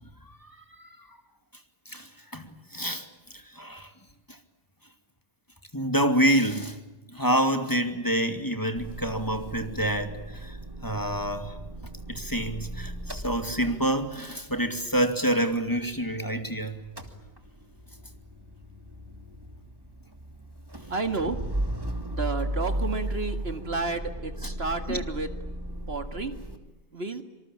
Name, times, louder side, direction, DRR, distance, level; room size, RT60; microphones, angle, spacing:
voice 1, 0.0-1.2 1.9-3.1 3.3-3.9 4.3-4.4 5.7-6.8 7.1-10.6 10.8-11.6 12.1-16.8 24.4-24.5 24.9-25.0, right 1 dB, 15° left, 2.4 m, -28 dB
Motor vehicle (road) / Engine starting / Idling, 8.8-16.5 16.7-26.6, right 1 dB, 20° right, 2.6 m, -36 dB
voice 2, 20.9-21.6 22.1-25.3 25.9-26.4 26.9-27.2, right 3 dB, 60° right, 2.3 m, -31 dB
26.0 x 26.0 x 8.7 m
omnidirectional pair, 1.2 m